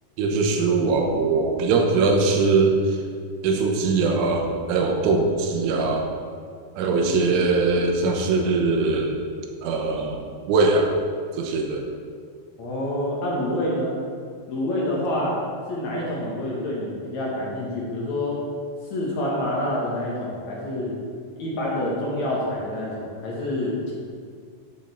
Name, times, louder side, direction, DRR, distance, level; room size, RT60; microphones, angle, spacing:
voice 1, 0.2-3.0 3.4-6.1 6.8-9.2 9.6-10.2 10.5-11.0 11.3-11.9, right 3 dB, 85° right, 2 dB, 3.4 m, -21 dB
voice 2, 12.6-13.9 14.5-15.3 15.7-18.4 18.9-21.0 21.4-23.9, left 1 dB, 55° left, -5 dB, 2.2 m, -27 dB
8.7 x 5.3 x 7.1 m, 2.1 s
omnidirectional pair, 5.5 m